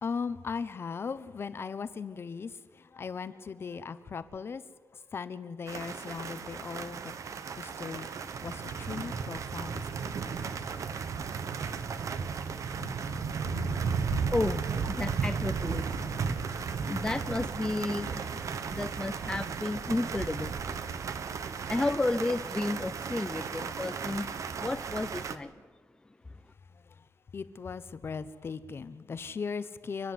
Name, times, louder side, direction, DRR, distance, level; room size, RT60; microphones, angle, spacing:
voice 1, 0.0-4.6 4.9-7.1 7.6-8.1 8.4-10.3 26.7-27.1 27.3-30.1, left 5 dB, 40° left, 1.0 m, -38 dB
sound 1, 5.7-25.4, right 6 dB, 60° right, 1.2 m, -35 dB
Thunder, 6.6-6.8 7.7-7.8 8.4-8.5 8.9-22.6, left 7 dB, 75° left, 1.3 m, -49 dB
voice 2, 14.1-16.2 16.5-20.6 21.5-25.7, left 2 dB, 10° left, 0.6 m, -33 dB
29.0 x 10.5 x 9.6 m
wide cardioid pair, 160°, 6 cm